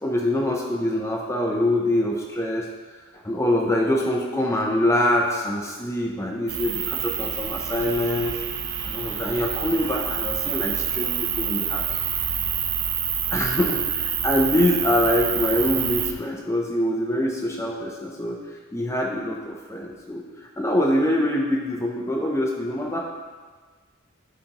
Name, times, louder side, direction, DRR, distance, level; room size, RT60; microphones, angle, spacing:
voice 1, 0.0-2.7 3.2-8.4 8.8-11.9 13.3-23.0, left 1 dB, 15° left, -1 dB, 0.5 m, -24 dB
sound 1, 6.5-16.1, right 9 dB, 60° right, 0.5 m, -27 dB
11.5 x 4.0 x 2.9 m, 1.5 s
head